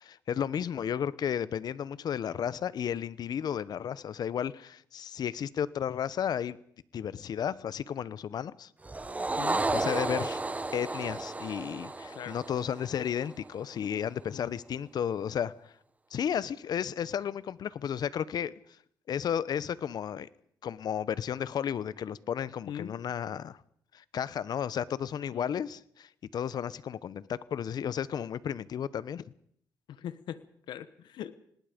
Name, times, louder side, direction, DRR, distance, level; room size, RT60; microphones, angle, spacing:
voice 1, 0.0-6.6 6.9-8.7 9.7-10.4 10.7-15.7 16.1-18.5 19.1-20.3 20.6-23.6 23.9-29.2, left 8 dB, 65° left, 0.9 m, -33 dB
sound 1, 8.8-13.4, right 2 dB, 20° right, 1.1 m, -33 dB
voice 2, 9.4-9.7 12.1-12.3 14.3-14.5 22.7-22.9 25.3-25.5 29.9-30.4 30.7-31.3, left 10 dB, 85° left, 1.2 m, -40 dB
26.5 x 19.0 x 5.2 m
cardioid pair, 90°, 8 cm